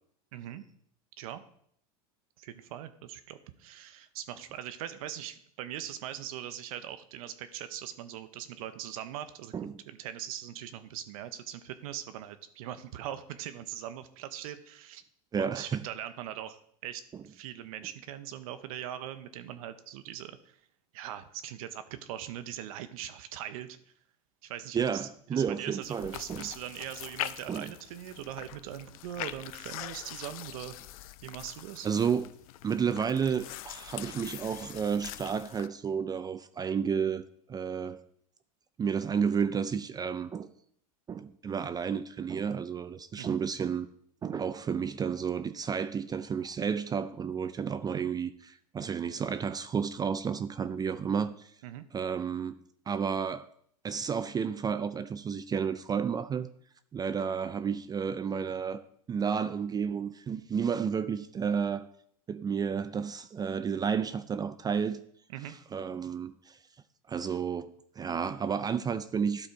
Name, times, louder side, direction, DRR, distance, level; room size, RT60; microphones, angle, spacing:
voice 1, 0.3-0.6 1.2-1.4 2.4-9.5 9.9-15.0 15.4-20.6 20.9-23.8 24.4-30.8 31.2-31.9 43.2-43.4 51.6-51.8 65.3-65.5, right 11 dB, 65° right, 0.7 m, -41 dB
voice 2, 15.3-15.8 17.1-17.2 24.7-26.5 27.5-27.7 31.8-32.3 32.6-38.0 38.8-40.5 41.1-43.9 44.2-51.5 51.9-52.6 52.9-53.5 53.8-56.5 56.9-58.8 59.1-61.9 62.3-65.0 65.4-66.6 67.1-69.5, right 6 dB, 20° right, 0.4 m, -31 dB
sound 1, 25.8-35.7, left 14 dB, 70° left, 0.5 m, -43 dB
12.0 x 4.3 x 4.5 m
hypercardioid pair, 100°, 19 cm